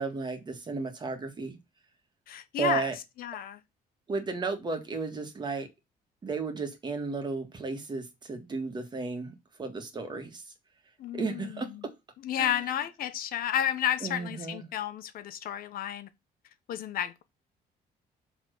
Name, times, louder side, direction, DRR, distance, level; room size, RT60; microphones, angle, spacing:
voice 1, 0.0-1.6 2.6-3.0 4.1-5.7 6.2-10.4 11.1-11.9 12.4-12.5 14.0-14.6, right 4 dB, 30° right, 1.8 m, -34 dB
voice 2, 2.3-2.9 3.2-3.6 11.0-11.9 12.2-16.1 16.7-17.2, left 10 dB, 65° left, 0.9 m, -32 dB
7.2 x 3.7 x 6.5 m
cardioid pair, 150°, 16 cm